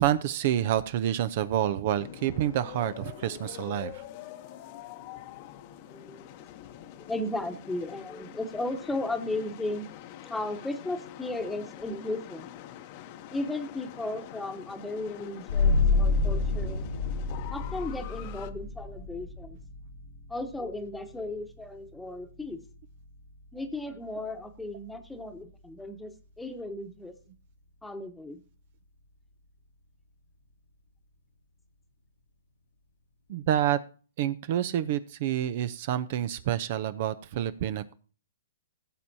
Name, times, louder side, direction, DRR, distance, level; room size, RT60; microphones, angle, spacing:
voice 1, 0.0-4.0 33.3-33.8 34.2-37.9, right 11 dB, 50° right, 14 dB, 0.6 m, -28 dB
sound 1, 2.0-18.5, left 12 dB, 45° left, 0.9 m, -45 dB
voice 2, 5.9-6.3 7.1-9.9 10.2-12.5 13.3-16.8 17.5-19.6 20.3-22.6 23.5-27.1 27.8-28.4, left 2 dB, 5° left, 7 dB, 1.1 m, -35 dB
sound 2, 15.5-26.7, left 3 dB, 75° left, 1.4 m, -31 dB
16.5 x 7.4 x 2.8 m, 0.38 s
hypercardioid pair, 130°, 0 cm